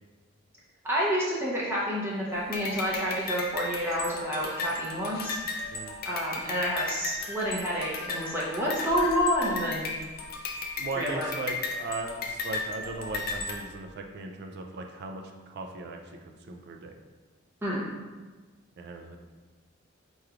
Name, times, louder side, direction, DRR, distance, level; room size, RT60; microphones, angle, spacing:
voice 1, 0.8-5.4 6.1-9.9 10.9-11.3 17.6-17.9, equal, 10° right, -6 dB, 0.6 m, -29 dB
sound 1, 2.5-13.5, left 3 dB, 45° left, 0.5 m, -35 dB
voice 2, 10.8-16.0 16.4-16.9 18.8-19.2, right 3 dB, 50° right, 4 dB, 0.3 m, -38 dB
4.8 x 3.0 x 2.3 m, 1.3 s
head